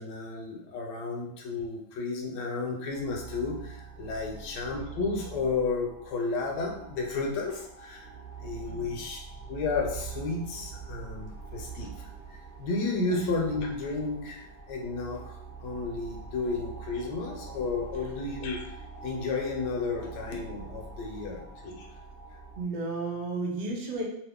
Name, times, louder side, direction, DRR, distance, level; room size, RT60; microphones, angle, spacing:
voice 1, 0.0-8.1 8.4-9.2 9.5-11.9 12.3-15.3 15.6-18.6 19.0-21.9, left 3 dB, 70° left, 0 dB, 1.2 m, -32 dB
sound 1, 2.9-22.6, right 5 dB, 10° right, 0.8 m, -44 dB
voice 2, 8.7-9.1 22.6-24.0, right 3 dB, 65° right, -2 dB, 0.4 m, -33 dB
3.0 x 2.4 x 3.5 m, 0.78 s
omnidirectional pair, 2.0 m